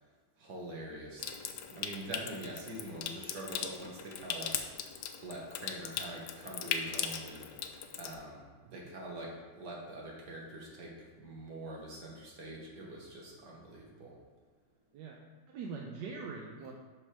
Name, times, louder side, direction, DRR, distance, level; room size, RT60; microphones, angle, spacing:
voice 1, 0.4-1.2 1.8-4.6 5.2-7.5 8.0-14.1 16.6-16.7, right 1 dB, 65° right, -2 dB, 2.1 m, -44 dB
Water tap faucet / Sink (filling or washing) / Trickle dribble, 1.2-8.2, left 7 dB, 75° left, 1.2 m, -39 dB
voice 2, 15.5-16.7, right 5 dB, 80° right, 0 dB, 1.4 m, -43 dB
6.7 x 6.2 x 4.9 m, 1.4 s
omnidirectional pair, 1.9 m